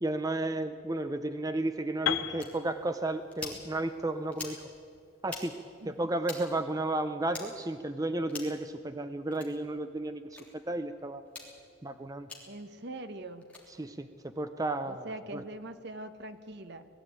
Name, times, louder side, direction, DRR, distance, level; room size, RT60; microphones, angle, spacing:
voice 1, 0.0-4.6 5.2-5.6 5.8-11.2 11.8-12.3 13.8-14.1 14.4-15.1 15.3-15.4, right 2 dB, 15° right, 9 dB, 0.6 m, -33 dB
Piano, 2.1-6.0, left 9 dB, 70° left, 1.1 m, -37 dB
sound 1, 2.4-2.5 3.3-3.6 4.3-4.6 5.2-5.4 6.2-6.4 7.3-7.5 8.3-8.6 9.3-9.5 10.3-10.4 11.3-11.5 12.3-12.4 13.4-13.6, left 3 dB, 5° left, 3.2 m, -42 dB
voice 2, 12.5-13.5 14.8-16.9, right 2 dB, 55° right, 10 dB, 1.1 m, -42 dB
20.5 x 14.0 x 9.2 m, 2.4 s
head